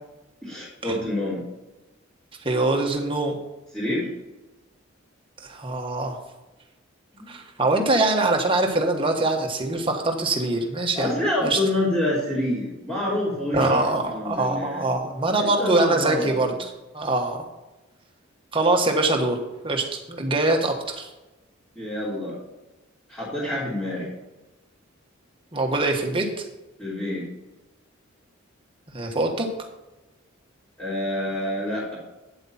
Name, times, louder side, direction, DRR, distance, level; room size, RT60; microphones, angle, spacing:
voice 1, 0.4-1.4 3.7-4.1 7.1-7.3 11.0-13.8 14.0-14.9 15.4-16.5 21.8-22.4 23.1-24.1 26.8-27.2 30.8-32.0, left 1 dB, 5° left, -11 dB, 3.5 m, -27 dB
voice 2, 2.4-3.4 5.4-6.2 7.3-11.1 11.4-11.6 13.5-17.4 18.5-21.1 25.5-26.4 28.9-29.5, right 2 dB, 25° right, 2 dB, 1.5 m, -23 dB
9.1 x 7.8 x 4.3 m, 1.1 s
head